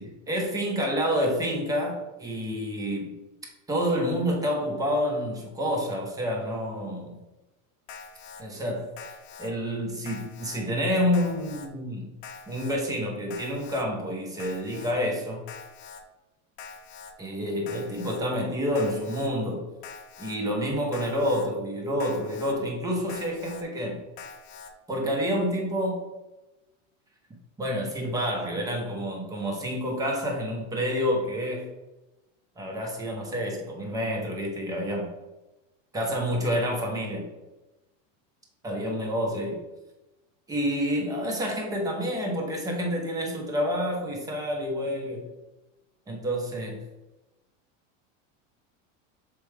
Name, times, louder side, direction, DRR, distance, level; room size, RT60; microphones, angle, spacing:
voice 1, 0.0-3.2 3.7-7.2 8.4-12.1 12.5-15.4 17.2-19.7 20.2-24.0 24.9-26.0 27.6-31.7 32.6-35.1 35.9-37.3 38.6-39.6 40.5-45.3 46.1-46.8, equal, 10° right, 0 dB, 0.8 m, -28 dB
Alarm, 7.9-8.4 9.0-9.5 10.1-10.6 11.1-11.7 12.2-12.8 13.3-13.8 14.4-14.9 15.5-16.0 16.6-17.1 17.7-18.2 18.8-19.3 19.8-20.4 20.9-21.5 22.0-22.5 23.1-23.6 24.2-24.7, left 6 dB, 40° left, 0.7 m, -44 dB
6.7 x 4.7 x 3.3 m, 1.0 s
supercardioid pair, 175°, 39 cm